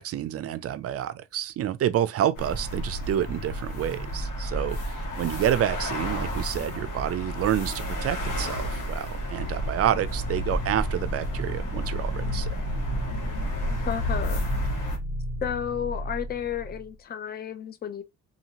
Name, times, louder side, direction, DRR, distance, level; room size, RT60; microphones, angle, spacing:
voice 1, 0.0-12.5, right 11 dB, 50° right, 0.4 m, -28 dB
sound 1, 2.3-15.0, equal, 90° left, 1.4 m, -31 dB
sound 2, 9.1-16.9, left 1 dB, 60° left, 1.8 m, -34 dB
voice 2, 13.8-14.4 15.4-18.0, left 8 dB, 30° left, 0.5 m, -32 dB
2.8 x 2.7 x 2.8 m
cardioid pair, 90°, 30 cm